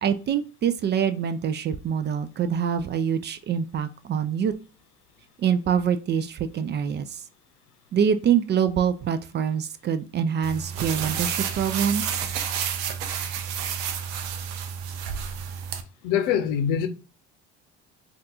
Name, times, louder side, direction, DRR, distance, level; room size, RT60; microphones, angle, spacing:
voice 1, 0.0-4.5 5.4-7.2 7.9-12.3, right 8 dB, 35° right, 0.4 m, -25 dB
sound 1, 10.4-15.8, right 8 dB, 80° right, 0.6 m, -30 dB
voice 2, 16.0-16.9, left 8 dB, 75° left, 0.6 m, -23 dB
2.7 x 2.4 x 3.5 m
supercardioid pair, 70°, 32 cm